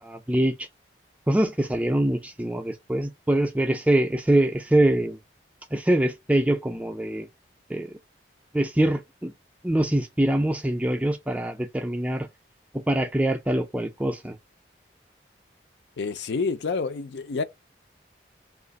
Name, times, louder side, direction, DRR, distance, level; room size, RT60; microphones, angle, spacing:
voice 1, 0.0-0.7 1.3-5.2 5.7-7.3 7.7-7.9 8.5-9.3 9.6-12.3 12.7-14.4, right 1 dB, 10° right, 0.3 m, -24 dB
voice 2, 16.0-17.4, left 4 dB, 70° left, 0.4 m, -28 dB
2.8 x 2.4 x 4.0 m
head